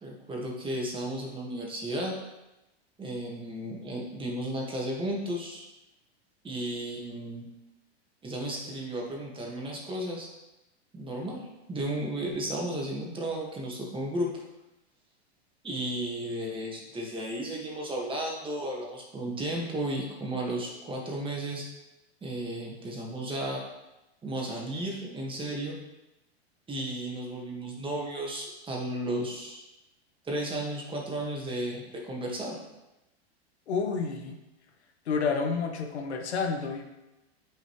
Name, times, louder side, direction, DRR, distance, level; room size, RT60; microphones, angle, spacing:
voice 1, 0.0-2.1 3.0-5.7 6.4-7.5 8.2-10.3 10.9-14.3 15.6-21.6 22.2-23.6 24.2-25.8 26.7-29.6 30.2-32.6, right 1 dB, 15° right, -1 dB, 1.8 m, -34 dB
voice 2, 33.7-34.4 35.1-36.9, left 5 dB, 90° left, 3 dB, 1.3 m, -29 dB
9.0 x 5.4 x 3.2 m, 0.97 s
hypercardioid pair, 120°, 32 cm